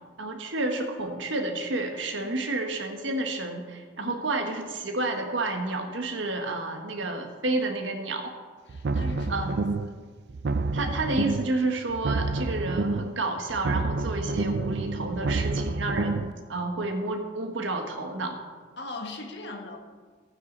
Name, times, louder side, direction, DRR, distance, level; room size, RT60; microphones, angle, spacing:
voice 1, 0.2-8.3 9.3-9.6 10.7-18.4, right 2 dB, 80° right, 4 dB, 1.5 m, -30 dB
voice 2, 8.7-9.5 9.8-10.0 18.8-19.8, left 3 dB, 65° left, 2 dB, 1.6 m, -39 dB
sound 1, 8.7-10.0 10.3-11.6 11.9-13.2 13.5-16.3, right 3 dB, 55° right, 0.4 m, -28 dB
15.0 x 9.2 x 4.0 m, 1.5 s
head